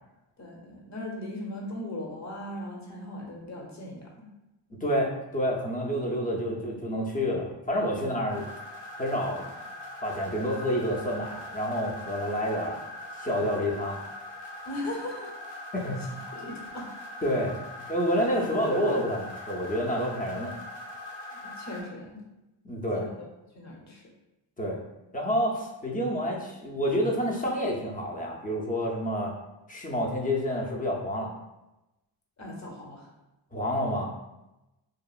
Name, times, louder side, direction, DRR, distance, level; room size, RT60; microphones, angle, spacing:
voice 1, 0.4-4.2 8.0-8.1 14.7-15.3 16.3-16.9 21.3-22.2 22.9-23.1 23.5-24.0 32.4-33.1, left 1 dB, 40° left, -1 dB, 0.9 m, -38 dB
voice 2, 4.8-8.4 8.9-9.5 10.0-12.7 13.2-14.0 15.7-16.0 17.2-17.5 17.9-20.5 22.6-23.1 24.6-24.8 25.1-29.3 29.7-31.3 33.5-34.1, equal, 20° left, -2 dB, 0.6 m, -28 dB
sound 1, 8.3-21.8, left 1 dB, 65° left, 1.4 m, -42 dB
2.9 x 2.4 x 2.3 m, 0.97 s
cardioid pair, 65°, 45 cm